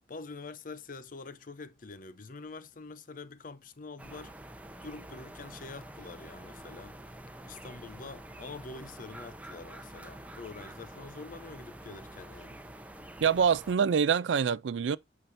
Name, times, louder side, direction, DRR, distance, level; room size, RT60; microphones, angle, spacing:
voice 1, 0.1-4.3 4.8-7.0 7.5-12.6, left 3 dB, 50° left, 0.6 m, -45 dB
sound 1, 4.0-13.7, right 1 dB, 10° right, 0.7 m, -47 dB
voice 2, 13.2-15.0, right 7 dB, 85° right, 0.4 m, -25 dB
8.8 x 5.8 x 2.6 m
head